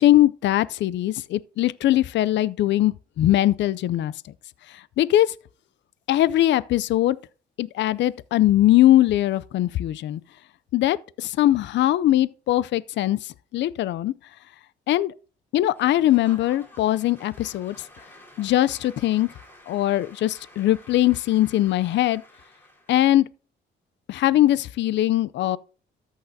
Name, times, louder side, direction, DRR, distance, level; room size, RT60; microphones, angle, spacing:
voice 1, 0.0-4.1 5.0-5.3 6.1-7.2 7.6-10.2 10.7-14.1 14.9-15.1 15.5-17.8 18.4-19.3 19.7-22.2 22.9-23.3 24.1-25.6, left 14 dB, 65° left, 0.4 m, -21 dB
Applause / Crowd, 15.7-23.1, left 1 dB, 10° left, 4.5 m, -50 dB
13.5 x 6.5 x 2.7 m
cardioid pair, 90°, 20 cm